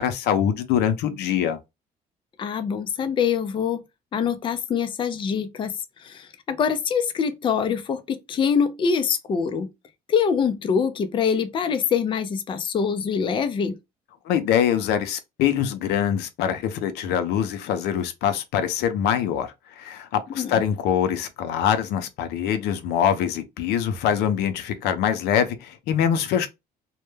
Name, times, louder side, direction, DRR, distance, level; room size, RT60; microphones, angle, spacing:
voice 1, 0.0-1.6 14.3-26.5, left 9 dB, 80° left, 0.5 m, -24 dB
voice 2, 2.4-3.8 4.1-5.7 6.0-9.7 10.1-13.8 20.3-20.6, left 6 dB, 30° left, 0.4 m, -24 dB
2.1 x 2.1 x 3.1 m
cardioid pair, 110°, 17 cm